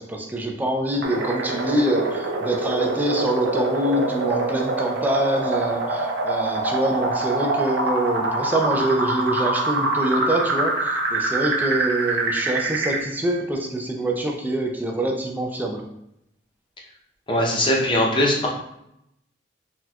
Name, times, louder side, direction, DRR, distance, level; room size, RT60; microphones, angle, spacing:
voice 1, 0.0-15.8, right 1 dB, 10° right, 1 dB, 0.3 m, -25 dB
sound 1, 1.0-13.0, right 2 dB, 75° right, 0.6 m, -25 dB
voice 2, 17.3-18.5, left 1 dB, 30° left, -2 dB, 0.6 m, -20 dB
4.1 x 2.3 x 2.3 m, 0.80 s
head